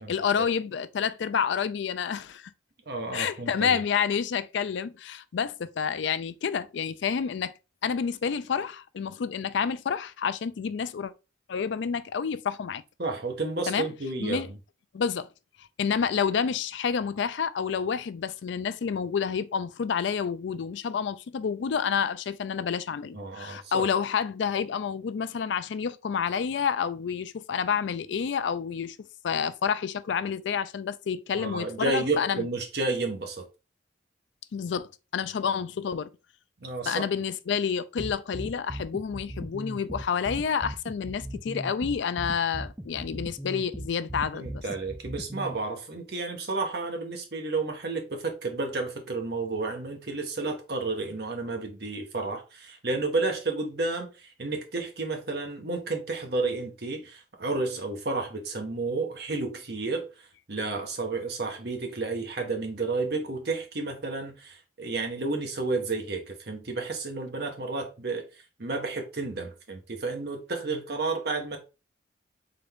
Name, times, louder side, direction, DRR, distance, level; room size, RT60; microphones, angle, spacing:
voice 1, 0.1-2.5 3.1-7.5 7.8-11.1 11.5-12.8 13.7-13.9 14.2-14.5 14.9-15.3 15.8-32.5 34.5-36.1 36.9-44.6, left 6 dB, 70° left, 0.4 m, -29 dB
voice 2, 2.9-3.8 13.0-14.6 23.1-23.9 31.4-33.5 36.6-37.1 44.3-60.1 60.5-68.3 68.6-71.6, right 3 dB, 55° right, 1.0 m, -31 dB
sound 1, 38.0-45.5, right 1 dB, 10° right, 0.5 m, -37 dB
3.8 x 3.4 x 3.5 m
head